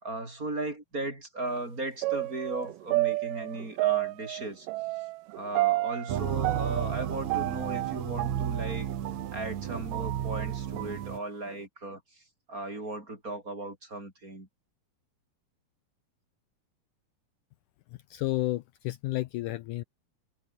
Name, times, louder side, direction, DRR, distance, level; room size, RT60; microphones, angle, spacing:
voice 1, 0.0-4.7 5.3-8.9 9.3-12.2 12.5-14.5, right 2 dB, 20° right, 5.3 m, -36 dB
sound 1, 2.0-9.3 9.7-11.0 11.5-11.6, right 20 dB, 80° right, 1.9 m, -31 dB
sound 2, 6.1-11.2, right 10 dB, 60° right, 2.5 m, -33 dB
voice 2, 18.1-19.8, left 17 dB, 85° left, 1.8 m, -31 dB
omnidirectional pair, 4.3 m